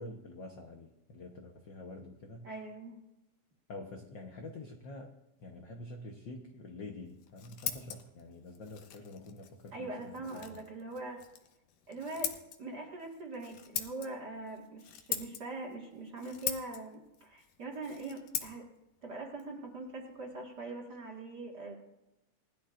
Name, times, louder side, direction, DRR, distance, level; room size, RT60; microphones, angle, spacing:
voice 1, 0.0-2.5 3.7-10.6, left 2 dB, 70° left, 2 dB, 1.1 m, -47 dB
voice 2, 2.4-3.0 9.7-11.2 11.9-18.7 19.0-21.7, right 2 dB, 40° right, -1 dB, 2.0 m, -42 dB
Scissors, 7.1-20.6, left 10 dB, 85° left, 2.4 m, -43 dB
19.5 x 13.0 x 2.5 m, 0.92 s
omnidirectional pair, 3.5 m